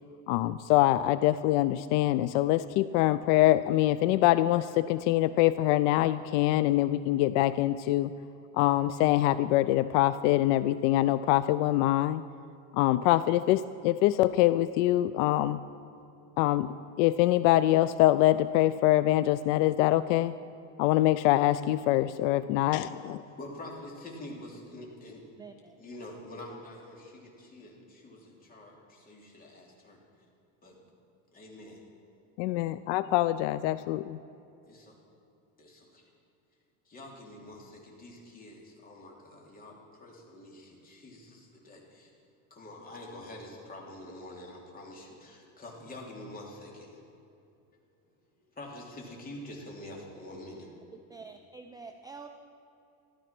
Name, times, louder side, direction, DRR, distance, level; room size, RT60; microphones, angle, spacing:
voice 1, 0.3-8.1 8.5-12.2 12.7-15.6 16.4-16.7 17.0-20.3 20.8-23.2 32.4-34.2, left 15 dB, 75° left, 15 dB, 0.5 m, -24 dB
voice 2, 23.3-25.2 25.8-30.0 30.6-30.8 31.3-31.8 34.7-35.0 35.6-36.1 36.8-42.1 42.5-47.0 48.5-50.7, left 1 dB, 25° left, -2 dB, 3.1 m, -46 dB
voice 3, 25.4-25.8 51.1-52.3, right 4 dB, 10° right, 5 dB, 0.4 m, -46 dB
14.0 x 13.0 x 6.0 m, 2.7 s
cardioid pair, 140°, 38 cm